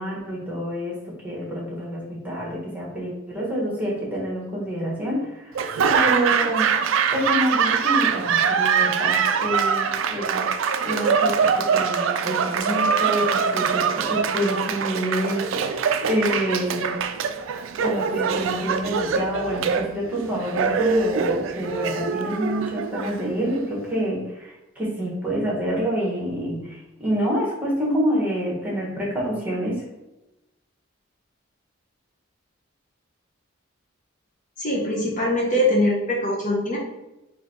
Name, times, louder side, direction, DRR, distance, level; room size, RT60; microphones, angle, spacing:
voice 1, 0.0-5.6 5.9-6.7 7.1-10.4 10.8-17.0 17.8-29.8, equal, 10° right, -4 dB, 1.2 m, -27 dB
Laughter / Applause, 5.5-23.6, right 6 dB, 70° right, 0.3 m, -23 dB
voice 2, 34.6-36.8, left 1 dB, 40° left, -3 dB, 0.7 m, -22 dB
4.0 x 2.6 x 4.2 m, 0.96 s
head